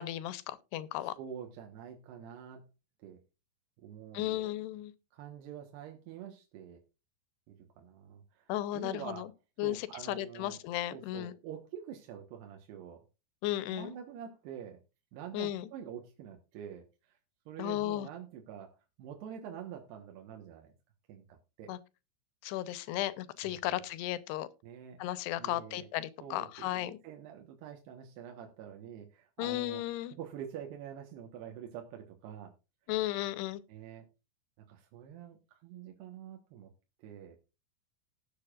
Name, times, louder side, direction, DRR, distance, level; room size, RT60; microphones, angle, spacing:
voice 1, 0.0-1.2 4.1-4.9 8.5-9.3 9.6-11.3 13.4-13.9 15.3-15.7 17.6-18.1 21.7-21.8 22.4-24.5 25.0-27.0 29.4-30.1 32.9-33.6, left 14 dB, 85° left, 2.9 m, -35 dB
voice 2, 1.2-2.7 3.0-3.2 3.8-4.5 5.1-6.8 7.5-9.3 9.6-10.6 10.9-13.0 13.7-14.8 15.1-17.2 17.5-20.7 21.1-21.7 23.4-23.8 24.6-25.0 25.4-25.9 26.2-32.5 33.7-34.1 34.6-36.7 37.0-37.4, right 9 dB, 80° right, 3.3 m, -46 dB
18.5 x 7.0 x 2.4 m
omnidirectional pair, 4.7 m